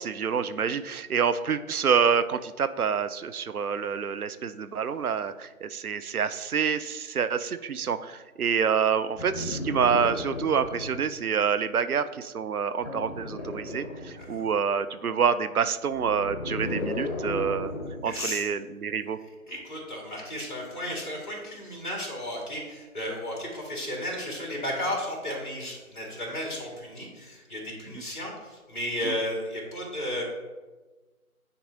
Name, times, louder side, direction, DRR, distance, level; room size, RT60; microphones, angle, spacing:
voice 1, 0.0-17.7 18.0-19.2 27.9-28.0 29.0-29.1, right 6 dB, 75° right, 12 dB, 0.6 m, -27 dB
sound 1, 9.2-11.1 12.8-14.6 15.9-18.1 19.5-19.6, left 2 dB, 50° left, 1.1 m, -35 dB
voice 2, 18.0-18.5 19.5-30.2, left 1 dB, 35° left, -2 dB, 2.0 m, -34 dB
9.5 x 4.0 x 2.7 m, 1.2 s
figure-of-eight pair, 155°, 44 cm